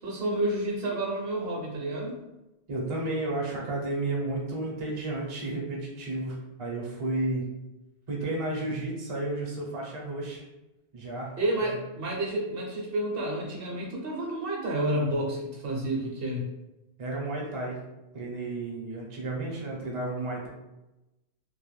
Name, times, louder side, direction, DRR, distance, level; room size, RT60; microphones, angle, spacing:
voice 1, 0.0-2.2 11.4-16.5, right 1 dB, 60° right, -2 dB, 0.8 m, -30 dB
voice 2, 2.7-7.4 8.1-10.4 10.9-11.3 17.0-17.8 18.1-20.5, right 2 dB, 40° right, -2 dB, 0.5 m, -32 dB
2.3 x 2.1 x 3.0 m, 0.97 s
omnidirectional pair, 1.1 m